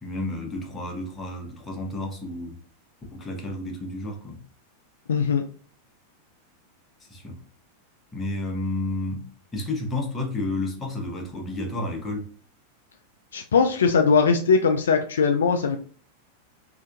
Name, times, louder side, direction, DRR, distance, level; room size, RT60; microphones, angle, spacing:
voice 1, 0.0-2.6 3.1-4.4 7.1-7.4 8.1-12.3, left 2 dB, 15° left, 1.0 m, -31 dB
voice 2, 5.1-5.4 13.3-15.8, left 5 dB, 65° left, 0.3 m, -20 dB
3.4 x 2.7 x 2.5 m
figure-of-eight pair, 90°, 0 cm